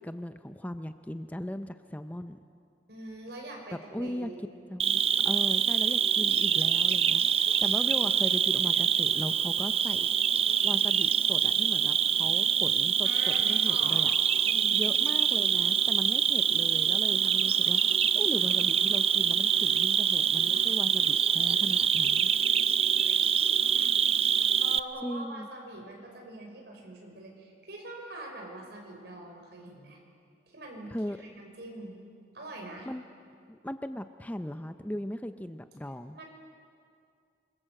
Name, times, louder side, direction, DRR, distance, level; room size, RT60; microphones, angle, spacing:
voice 1, 0.0-2.4 3.9-4.3 4.7-5.0 5.2-10.1 10.6-14.1 14.7-22.3 25.0-25.5 30.9-31.2 32.9-33.0 33.5-36.2, equal, 10° left, 9 dB, 0.6 m, -38 dB
voice 2, 2.9-4.6 13.0-14.1 14.4-14.9 23.0-23.2 23.8-23.9 24.6-30.0 30.5-32.0 32.3-32.9 36.1-36.2, right 1 dB, 65° right, 1 dB, 5.7 m, -43 dB
Cricket, 4.8-24.8, right 8 dB, 35° right, 0.5 m, -25 dB
27.5 x 22.0 x 7.7 m, 2.3 s
head